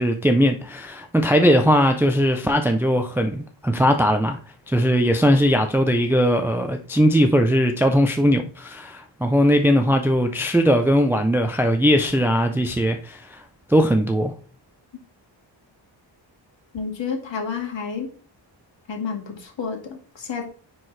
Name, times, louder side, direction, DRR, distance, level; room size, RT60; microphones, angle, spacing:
voice 1, 0.0-4.4 4.7-13.4 13.7-14.3, equal, 5° right, 5 dB, 0.4 m, -19 dB
voice 2, 16.7-18.1 18.9-20.4, left 5 dB, 70° left, 2 dB, 2.0 m, -30 dB
9.9 x 4.6 x 3.2 m, 0.41 s
wide cardioid pair, 170°, 46 cm